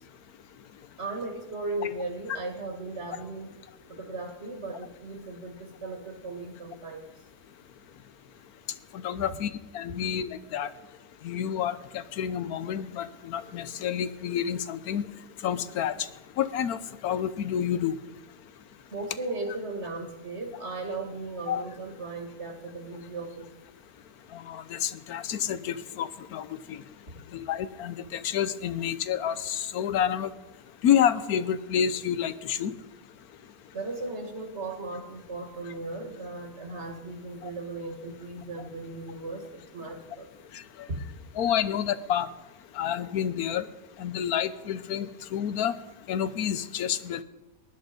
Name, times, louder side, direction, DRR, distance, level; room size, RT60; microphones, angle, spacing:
voice 1, 1.0-3.5 3.9-7.1 9.1-9.2 18.9-23.5 33.7-40.3, right 2 dB, 50° right, 5 dB, 2.1 m, -37 dB
voice 2, 8.9-10.7 11.2-15.1 15.4-16.1 16.4-17.9 21.5-21.6 24.3-26.8 27.3-30.3 30.8-32.7 37.4-37.5 41.4-42.3 42.7-43.7 44.0-45.7 46.1-47.2, left 9 dB, 90° left, 14 dB, 1.3 m, -29 dB
18.5 x 10.5 x 5.1 m, 0.99 s
omnidirectional pair, 1.5 m